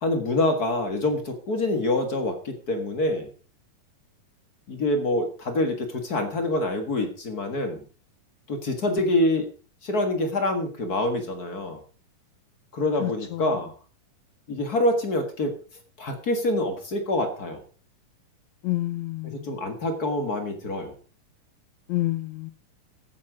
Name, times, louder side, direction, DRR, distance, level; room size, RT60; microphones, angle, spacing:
voice 1, 0.0-3.3 4.7-7.8 8.5-9.5 9.8-11.8 12.7-13.7 14.5-15.5 16.0-17.6 19.4-20.9, left 1 dB, 40° left, 6 dB, 1.4 m, -26 dB
voice 2, 13.0-13.6 18.6-19.6 21.9-22.5, left 17 dB, 85° left, 12 dB, 1.6 m, -29 dB
15.0 x 8.7 x 4.9 m, 0.37 s
omnidirectional pair, 4.0 m